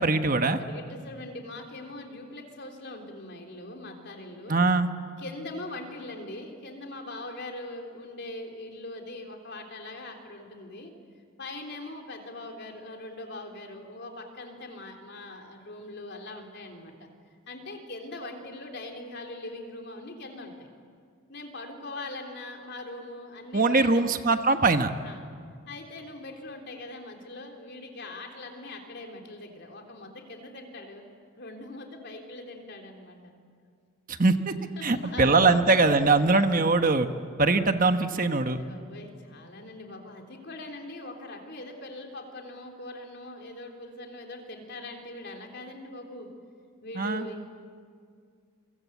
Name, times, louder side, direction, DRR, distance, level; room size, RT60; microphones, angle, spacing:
voice 1, 0.0-0.6 4.5-4.9 23.5-24.9 34.1-34.5 34.8-37.1 37.4-38.6 47.0-47.2, right 3 dB, 40° right, 8 dB, 1.1 m, -22 dB
voice 2, 0.6-4.6 5.2-10.9 11.4-17.1 17.5-20.7 21.3-24.2 25.0-25.2 25.7-31.0 31.4-33.3 34.8-36.0 38.5-46.3 46.8-47.5, left 2 dB, 55° left, 2 dB, 3.6 m, -41 dB
28.0 x 24.0 x 8.3 m, 2.1 s
head